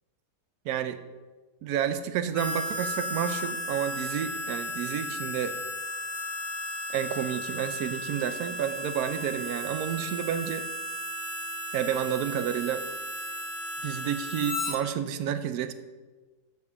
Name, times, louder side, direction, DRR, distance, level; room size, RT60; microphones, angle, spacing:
voice 1, 0.7-1.0 1.6-5.6 6.9-10.7 11.7-12.8 13.8-15.7, right 9 dB, 70° right, 11 dB, 1.1 m, -30 dB
Harmonica, 2.3-14.8, equal, 60° left, 1.9 m, -35 dB
7.1 x 6.9 x 6.9 m, 1.3 s
omnidirectional pair, 1.8 m